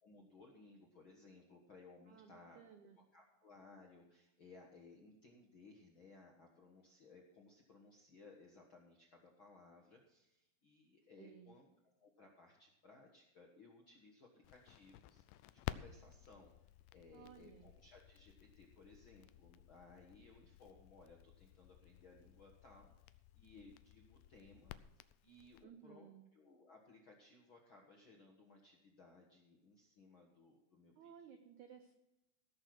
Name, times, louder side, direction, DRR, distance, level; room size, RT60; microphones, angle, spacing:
voice 1, 0.0-2.6 3.1-31.4, left 3 dB, 60° left, -1 dB, 1.3 m, -62 dB
voice 2, 2.1-3.0 11.2-11.5 17.1-17.7 25.6-26.2 31.0-31.9, right 8 dB, 90° right, 6 dB, 1.7 m, -58 dB
Crackle, 14.4-25.6, left 14 dB, 85° left, 2.0 m, -54 dB
16.5 x 6.8 x 6.0 m, 0.92 s
omnidirectional pair, 4.6 m